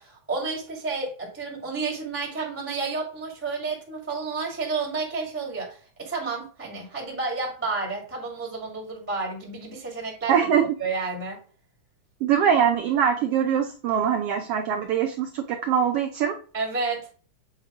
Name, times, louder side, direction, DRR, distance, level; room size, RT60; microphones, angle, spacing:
voice 1, 0.0-11.4 16.5-17.1, right 4 dB, 5° right, -1 dB, 1.2 m, -31 dB
voice 2, 10.3-10.7 12.2-16.4, right 8 dB, 85° right, 4 dB, 1.3 m, -23 dB
7.8 x 2.9 x 4.8 m, 0.41 s
omnidirectional pair, 3.4 m